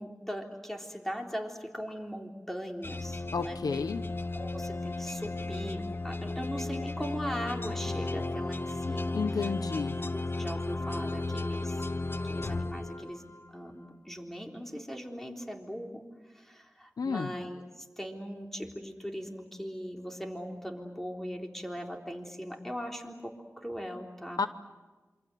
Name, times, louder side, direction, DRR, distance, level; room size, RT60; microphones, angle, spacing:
voice 1, 0.0-3.6 4.3-9.2 10.1-11.8 12.1-13.2 13.5-16.0 16.3-24.4, equal, 5° left, 2 dB, 3.6 m, -39 dB
sound 1, 2.8-13.5, left 2 dB, 35° left, 0.8 m, -34 dB
voice 2, 3.3-4.0 9.1-10.0 17.0-17.3 24.4-24.5, left 5 dB, 85° left, 12 dB, 0.9 m, -31 dB
27.5 x 25.0 x 7.9 m, 1.2 s
wide cardioid pair, 60°, 6 cm